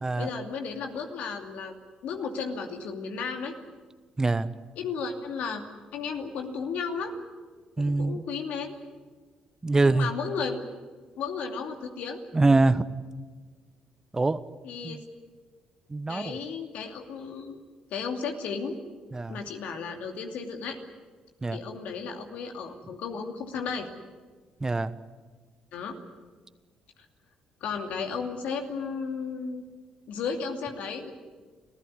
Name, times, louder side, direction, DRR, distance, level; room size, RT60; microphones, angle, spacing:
voice 1, 0.2-3.5 4.8-5.6 5.9-7.1 7.8-8.8 9.8-10.6 11.2-12.2 14.6-15.0 16.1-17.6 17.9-18.8 19.3-20.8 21.5-23.9 25.7-26.0 27.6-29.6 30.1-31.1, left 5 dB, 70° left, 4 dB, 2.6 m, -34 dB
voice 2, 4.2-4.5 7.8-8.2 9.6-10.1 12.3-12.8 14.1-14.4 14.8-15.0 15.9-16.4 19.1-19.4 21.4-21.6 24.6-24.9, right 3 dB, 25° right, 13 dB, 1.1 m, -24 dB
26.0 x 15.5 x 9.8 m, 1.4 s
hypercardioid pair, 55°, 3 cm